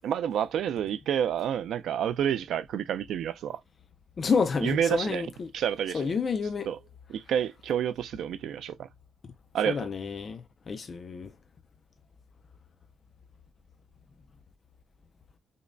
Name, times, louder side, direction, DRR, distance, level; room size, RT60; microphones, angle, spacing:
voice 1, 0.0-3.6 4.6-5.3 5.5-6.1 6.7-6.8 7.1-8.9 9.5-9.8, right 9 dB, 75° right, 0.3 m, -29 dB
voice 2, 4.2-5.5 5.9-6.7 9.7-11.3, left 5 dB, 35° left, 0.3 m, -29 dB
5.1 x 2.1 x 2.5 m
wide cardioid pair, 170°, 0 cm